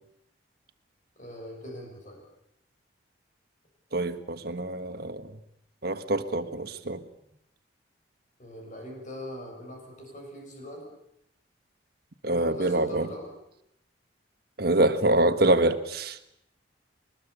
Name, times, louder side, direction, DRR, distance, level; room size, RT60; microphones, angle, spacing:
voice 1, 1.2-2.2 6.9-7.1 8.4-10.9 12.2-13.3, equal, 45° left, 2 dB, 7.2 m, -42 dB
voice 2, 3.9-5.3 5.8-7.0 12.2-13.1 14.6-16.2, right 2 dB, 60° right, 9 dB, 1.5 m, -25 dB
22.5 x 20.5 x 8.3 m, 0.77 s
head